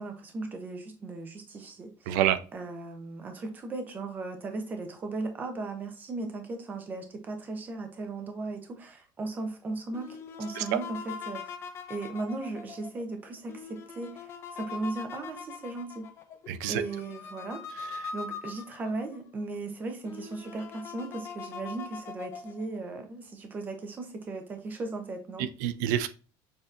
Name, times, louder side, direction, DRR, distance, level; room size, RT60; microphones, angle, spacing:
voice 1, 0.0-2.1 2.5-11.4 11.9-16.1 16.7-17.6 18.1-25.5, right 3 dB, 20° right, 0.6 m, -37 dB
voice 2, 2.1-2.4 10.6-10.8 16.5-16.8 18.0-18.1 25.4-26.1, right 11 dB, 85° right, 0.4 m, -27 dB
sound 1, 9.9-19.2 19.7-19.8 20.0-22.8, left 5 dB, 25° left, 0.4 m, -42 dB
6.4 x 2.7 x 2.4 m
cardioid pair, 180°, 10 cm